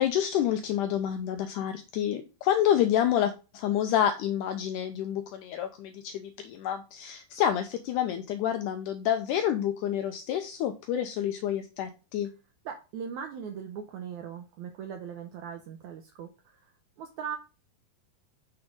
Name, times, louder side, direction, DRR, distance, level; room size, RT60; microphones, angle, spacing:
voice 1, 0.0-12.3, left 10 dB, 85° left, 7 dB, 1.8 m, -28 dB
voice 2, 12.6-17.4, right 7 dB, 80° right, 5 dB, 1.7 m, -39 dB
6.9 x 3.4 x 5.1 m, 0.31 s
omnidirectional pair, 4.1 m